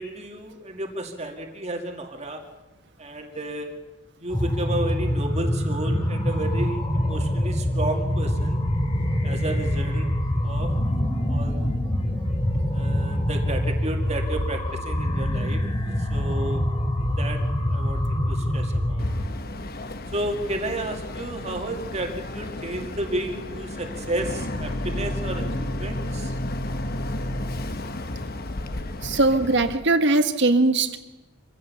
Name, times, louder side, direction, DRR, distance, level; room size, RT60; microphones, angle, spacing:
voice 1, 0.0-2.4 3.0-3.7 4.2-8.6 9.2-10.1 10.4-10.7 11.3-11.7 12.7-15.6 16.1-16.6 17.2-17.4 17.7-19.0 20.1-26.4, right 1 dB, 30° right, 3 dB, 2.1 m, -32 dB
sound 1, 4.3-19.3, left 1 dB, 25° left, 2.5 m, -25 dB
Boat Water vehicle, 19.0-29.8, left 1 dB, 45° left, 1.2 m, -32 dB
voice 2, 29.0-31.0, right 2 dB, 55° right, 9 dB, 1.4 m, -20 dB
25.0 x 16.0 x 7.0 m, 1.1 s
head